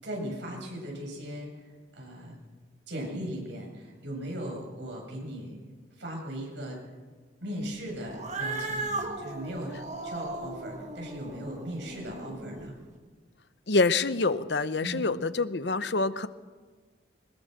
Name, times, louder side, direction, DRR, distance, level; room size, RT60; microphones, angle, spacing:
voice 1, 0.0-2.4 2.9-5.6 6.0-6.8 7.4-12.7 14.8-15.0, equal, 70° right, -1 dB, 7.5 m, -38 dB
Cat, 8.1-12.7, right 2 dB, 40° right, 2.3 m, -37 dB
voice 2, 13.7-16.3, left 3 dB, 70° left, 13 dB, 0.9 m, -26 dB
22.0 x 20.5 x 6.8 m, 1.4 s
head